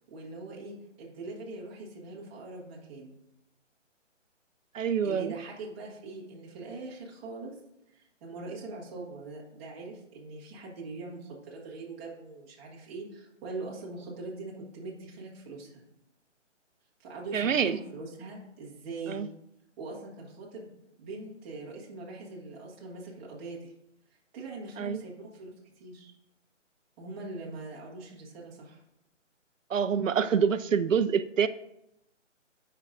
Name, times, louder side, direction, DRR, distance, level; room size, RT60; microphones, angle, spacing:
voice 1, 0.1-3.2 5.0-7.6 7.9-15.8 17.0-19.3 19.8-20.7 21.0-23.7 24.3-26.1 27.0-28.8, right 3 dB, 10° right, -4 dB, 1.0 m, -42 dB
voice 2, 4.7-5.3 17.3-17.8 19.1-19.3 24.8-25.0 29.7-31.5, right 7 dB, 90° right, 12 dB, 0.6 m, -26 dB
15.5 x 5.6 x 2.5 m, 0.81 s
hypercardioid pair, 160°, 37 cm